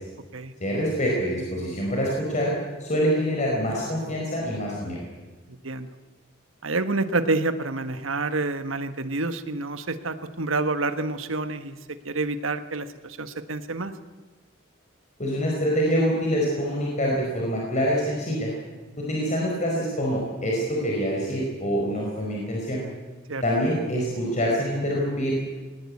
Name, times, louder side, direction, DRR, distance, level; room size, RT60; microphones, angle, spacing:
voice 1, 0.6-2.5 2.8-5.0 15.2-18.5 19.0-22.8 23.4-25.4, equal, 35° left, -3 dB, 4.8 m, -25 dB
voice 2, 5.5-5.9 6.6-11.8 12.0-13.9 23.3-23.4, right 3 dB, 75° right, 10 dB, 1.3 m, -28 dB
20.0 x 19.5 x 8.5 m, 1.2 s
head